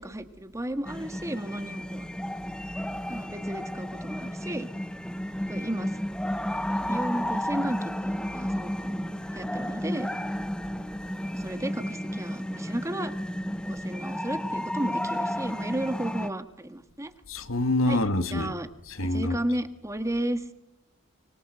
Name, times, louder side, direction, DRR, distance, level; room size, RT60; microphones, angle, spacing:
voice 1, 0.0-2.1 3.1-4.7 5.5-6.0 6.8-9.0 9.3-10.1 11.3-13.1 13.6-17.1 17.9-18.7 19.0-20.5, right 1 dB, 15° right, 1.6 m, -33 dB
sound 1, 0.8-16.3, equal, 5° left, 1.1 m, -32 dB
voice 2, 17.3-18.5 19.0-19.4, left 2 dB, 70° left, 1.9 m, -26 dB
25.5 x 23.0 x 7.9 m
head